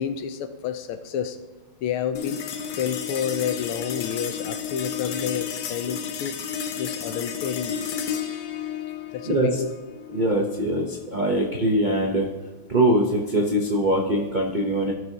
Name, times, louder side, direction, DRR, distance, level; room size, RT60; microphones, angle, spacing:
voice 1, 0.0-1.4 1.8-2.4 2.8-6.4 6.7-7.8 9.1-9.7, left 8 dB, 85° left, 10 dB, 1.6 m, -29 dB
sound 1, 2.1-12.8, left 8 dB, 70° left, 1.1 m, -33 dB
voice 2, 10.1-12.3 12.7-14.9, right 1 dB, 75° right, 0 dB, 0.4 m, -22 dB
16.5 x 6.3 x 2.9 m, 1.2 s
omnidirectional pair, 2.3 m